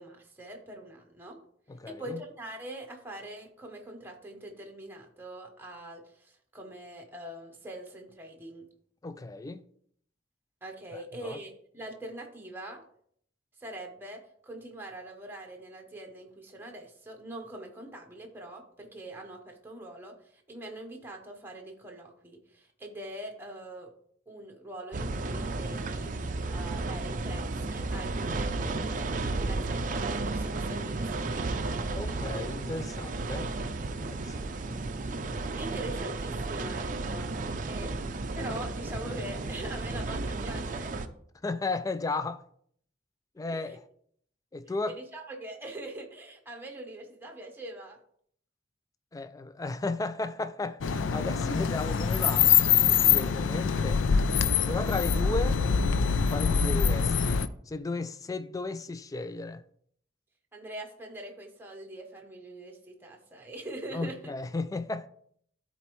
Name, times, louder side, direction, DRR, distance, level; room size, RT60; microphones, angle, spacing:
voice 1, 0.0-1.4 1.8-8.7 10.6-12.8 13.6-23.9 24.3-26.1 26.5-32.1 35.6-37.3 37.7-38.0 38.3-40.9 43.5-43.8 44.9-48.0 60.5-64.3, right 1 dB, 10° right, 1.0 m, -43 dB
voice 2, 1.7-2.2 9.0-9.7 10.9-11.4 31.9-33.5 33.9-34.8 41.4-42.4 43.4-43.8 44.5-44.9 49.1-52.5 52.9-54.0 54.7-55.6 56.3-59.6 63.9-65.1, left 3 dB, 20° left, 0.3 m, -34 dB
sound 1, 24.9-41.1, right 3 dB, 45° right, 0.5 m, -33 dB
sound 2, 50.8-57.5, left 7 dB, 90° left, 0.4 m, -24 dB
12.5 x 4.2 x 3.1 m
head